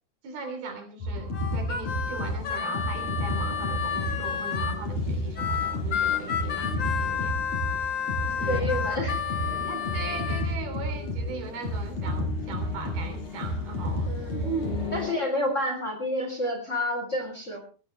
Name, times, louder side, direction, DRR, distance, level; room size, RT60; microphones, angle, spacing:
voice 1, 0.2-6.7 7.0-7.4 7.7-7.9 8.2-9.1 9.6-14.7, right 4 dB, 70° right, 6 dB, 5.1 m, -38 dB
sound 1, 1.0-15.1, left 1 dB, 45° left, 6.9 m, -31 dB
Harmonica, 1.3-4.8 5.3-10.5, left 7 dB, 70° left, 1.0 m, -31 dB
voice 2, 8.5-9.1 14.1-14.5 14.9-17.6, left 1 dB, 20° left, 3 dB, 3.4 m, -29 dB
20.5 x 16.5 x 3.2 m, 0.37 s
omnidirectional pair, 4.6 m